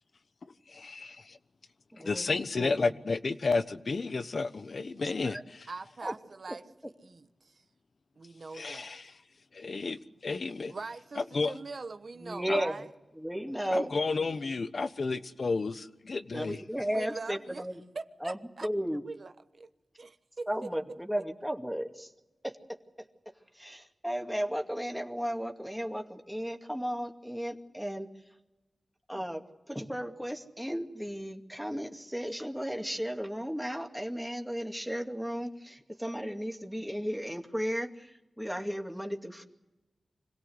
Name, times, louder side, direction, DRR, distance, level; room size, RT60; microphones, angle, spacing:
voice 1, 0.7-1.4 2.0-5.7 8.5-9.1 9.5-10.7 11.2-11.6 12.5-12.6 13.7-15.7 16.0-16.6, left 4 dB, 65° left, 12 dB, 1.1 m, -32 dB
voice 2, 1.9-2.8 5.0-5.4 6.0-6.1 12.2-12.9 13.2-13.9 16.3-17.8 18.2-19.0 20.5-22.1 22.4-22.6 23.3-28.1 29.1-39.4, equal, ahead, 3 dB, 2.4 m, -35 dB
voice 3, 5.7-6.6 7.0-7.6 8.2-9.1 10.7-12.8 16.4-16.6 16.9-17.6 17.9-18.7 19.0-19.7 20.0-20.7, right 3 dB, 65° right, 10 dB, 1.1 m, -42 dB
26.0 x 17.0 x 8.0 m, 1.1 s
cardioid pair, 45°, 0 cm